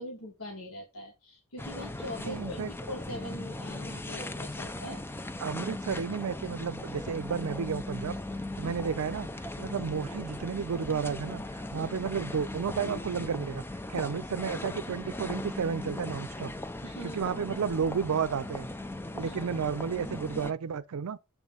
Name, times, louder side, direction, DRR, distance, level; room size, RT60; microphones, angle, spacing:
voice 1, 0.0-5.0 8.6-8.7 11.7-12.0 16.8-17.2 19.2-19.4, left 1 dB, 90° left, 1.5 m, -42 dB
sound 1, 1.6-20.5, left 2 dB, 10° left, 0.4 m, -38 dB
voice 2, 2.2-2.7 4.8-5.0 5.4-8.2 8.6-9.3 9.6-13.6 13.9-16.5 17.0-18.7 19.1-21.2, right 6 dB, 85° right, 0.5 m, -32 dB
7.2 x 3.2 x 5.2 m
head